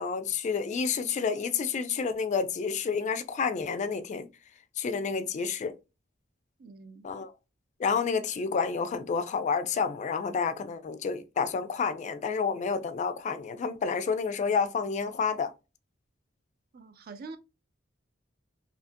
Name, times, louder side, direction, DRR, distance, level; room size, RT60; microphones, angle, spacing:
voice 1, 0.0-4.3 4.8-5.7 7.0-7.3 7.8-15.5, left 5 dB, 40° left, 0.3 m, -29 dB
voice 2, 6.6-7.1 16.7-17.4, right 4 dB, 50° right, 0.4 m, -45 dB
2.8 x 2.4 x 2.5 m
head